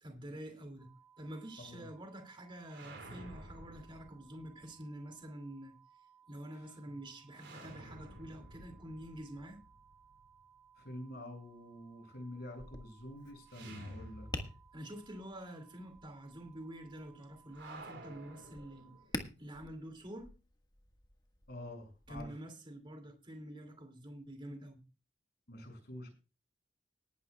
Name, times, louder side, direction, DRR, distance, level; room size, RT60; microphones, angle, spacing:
voice 1, 0.0-5.7 6.3-9.6 14.7-18.9 19.4-20.3 22.1-24.8, right 1 dB, 30° right, 2.5 m, -47 dB
sound 1, 0.8-19.1, right 8 dB, 5° right, 4.9 m, -64 dB
sound 2, 2.7-4.6 7.3-10.3 13.5-14.9 15.1-15.2 17.5-19.3, right 1 dB, 85° right, 4.8 m, -52 dB
voice 2, 10.8-14.3 21.5-22.3 25.5-26.1, left 1 dB, 60° left, 6.3 m, -47 dB
Tap, 12.5-22.2, left 2 dB, 25° left, 1.5 m, -49 dB
20.0 x 11.5 x 2.3 m
head